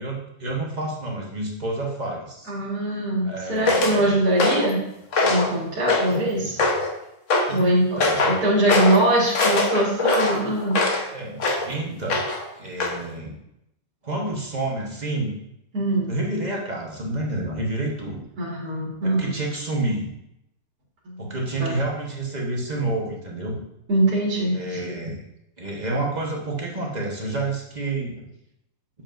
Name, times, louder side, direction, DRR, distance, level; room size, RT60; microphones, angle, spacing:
voice 1, 0.0-2.5 3.2-4.2 6.1-6.3 7.5-8.4 11.1-12.2 12.5-13.3 14.0-15.3 16.1-18.2 19.0-20.1 21.2-23.6 24.5-25.2 25.6-28.2, right 2 dB, 30° right, -2 dB, 1.0 m, -29 dB
voice 2, 2.5-4.8 5.2-6.6 7.5-10.8 15.7-16.1 18.4-19.4 21.1-21.7 23.9-24.8, right 1 dB, 70° right, -5 dB, 2.2 m, -22 dB
sound 1, 3.7-4.0 4.4-4.7 5.1-5.5 5.9-6.2 6.6-6.9 7.3-7.5 8.0-8.4 8.7-9.0 9.3-11.0 11.4-11.7 12.1-12.5 12.8-13.0, left 3 dB, 55° left, 1.2 m, -22 dB
8.0 x 7.1 x 2.5 m, 0.82 s
omnidirectional pair, 1.7 m